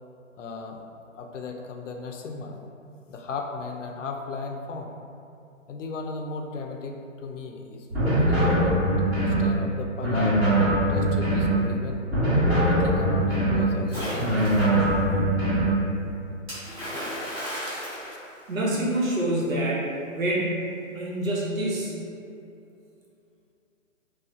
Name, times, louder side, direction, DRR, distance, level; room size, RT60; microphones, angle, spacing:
voice 1, 0.4-0.8 1.1-2.5 3.1-4.9 5.7-8.8 9.1-10.4 10.9-12.0 12.4-14.4, left 4 dB, 65° left, 3 dB, 0.5 m, -35 dB
sound 1, 7.9-9.5 10.0-11.6 12.1-13.7 14.2-15.8, right 1 dB, 50° right, 1.4 m, -22 dB
Splash splatter, 13.9-14.8 16.5-18.9, equal, 10° right, 0.8 m, -34 dB
voice 2, 18.5-22.0, right 1 dB, 80° right, -5 dB, 1.0 m, -27 dB
4.1 x 2.3 x 2.4 m, 2.6 s
hypercardioid pair, 160°, 40 cm